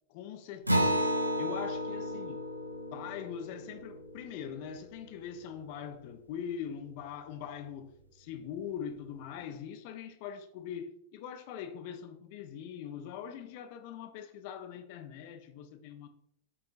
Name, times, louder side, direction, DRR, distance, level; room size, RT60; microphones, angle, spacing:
voice 1, 0.1-1.1 1.4-2.4 2.9-16.1, left 8 dB, 45° left, 0.5 m, -42 dB
Acoustic guitar, 0.7-5.6, equal, 85° right, 0.4 m, -33 dB
4.6 x 4.6 x 2.4 m
figure-of-eight pair, 90°, 0 cm